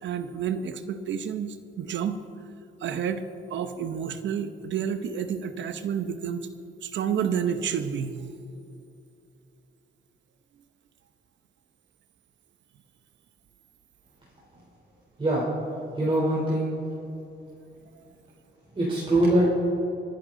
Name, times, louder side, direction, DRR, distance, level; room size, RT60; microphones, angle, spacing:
voice 1, 0.0-2.2 2.8-3.2 3.5-6.5 6.8-8.2, right 7 dB, 70° right, 10 dB, 1.0 m, -30 dB
voice 2, 15.2-15.5 15.9-16.7 18.7-19.5, right 1 dB, 25° right, -5 dB, 3.6 m, -23 dB
24.5 x 10.5 x 3.9 m, 2.7 s
cardioid pair, 90°, 20 cm